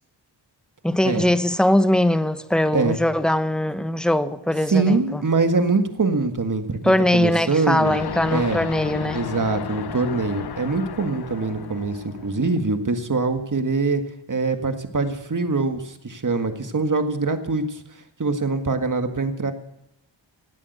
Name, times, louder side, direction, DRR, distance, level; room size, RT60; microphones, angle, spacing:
voice 1, 0.8-5.2 6.8-9.2, left 1 dB, ahead, 0.9 m, -21 dB
voice 2, 4.7-8.0 8.3-8.6 9.1-14.0 14.3-17.8 18.2-19.5, right 3 dB, 40° right, 1.8 m, -23 dB
sound 1, 7.8-12.6, left 8 dB, 55° left, 0.8 m, -33 dB
17.0 x 8.8 x 8.0 m
cardioid pair, 60°, 46 cm